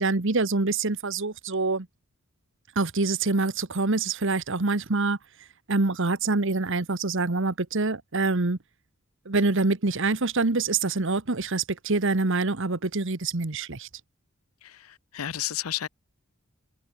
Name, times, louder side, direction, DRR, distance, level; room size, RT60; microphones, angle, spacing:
voice 1, 0.0-1.9 2.7-5.2 5.7-8.6 9.2-13.9, right 3 dB, 60° right, 1.3 m, -25 dB
voice 2, 14.6-15.9, left 11 dB, 80° left, 0.7 m, -32 dB
head